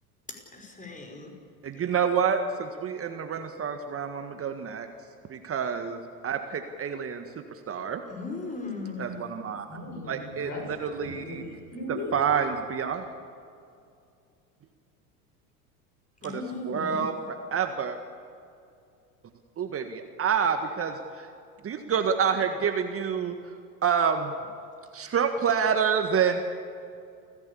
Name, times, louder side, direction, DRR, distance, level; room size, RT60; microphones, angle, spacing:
voice 1, 0.5-1.3 1.7-1.9 8.1-9.3 16.2-17.1, left 3 dB, 15° left, 3 dB, 6.0 m, -37 dB
voice 2, 1.6-4.9 5.3-7.2 7.7-8.0 9.0-9.6 10.1-10.5 10.8-11.4 12.1-13.0 16.2-18.0 19.6-21.3 21.6-23.4 23.8-24.3 24.9-26.4, right 7 dB, 30° right, 6 dB, 1.8 m, -28 dB
voice 3, 9.7-12.1, left 1 dB, 40° left, 2 dB, 7.7 m, -38 dB
28.5 x 16.0 x 8.6 m, 2.4 s
hypercardioid pair, 80°, 45 cm